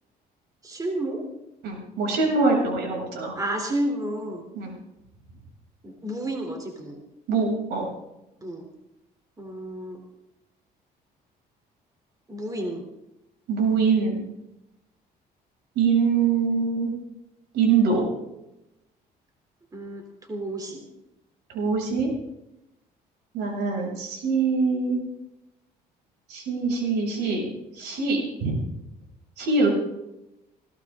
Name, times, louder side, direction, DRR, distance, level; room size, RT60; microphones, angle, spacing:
voice 1, 0.6-1.2 3.4-4.4 5.8-7.0 8.4-8.7 9.4-10.0 12.3-12.9 19.7-20.0 20.3-20.9 29.6-29.7, right 1 dB, 20° right, 3 dB, 3.5 m, -31 dB
voice 2, 1.6-3.4 4.5-4.7 7.3-7.9 13.5-14.2 15.8-16.9 17.5-18.1 21.5-22.1 23.3-25.0 26.3-27.5 27.7-28.6 29.4-29.7, right 4 dB, 80° right, 0 dB, 7.5 m, -23 dB
20.5 x 17.0 x 3.8 m, 0.90 s
cardioid pair, 110°, 17 cm